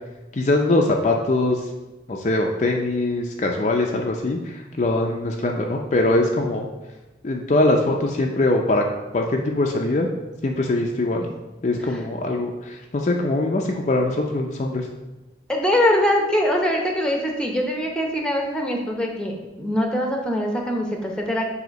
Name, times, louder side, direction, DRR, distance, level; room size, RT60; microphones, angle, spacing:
voice 1, 0.3-1.7 2.1-6.7 7.2-8.8 9.1-10.1 10.4-11.3 11.6-14.9, left 2 dB, 40° left, 1 dB, 0.5 m, -22 dB
voice 2, 15.5-21.5, left 1 dB, 5° left, 0 dB, 0.8 m, -23 dB
7.8 x 2.8 x 5.2 m, 1.1 s
head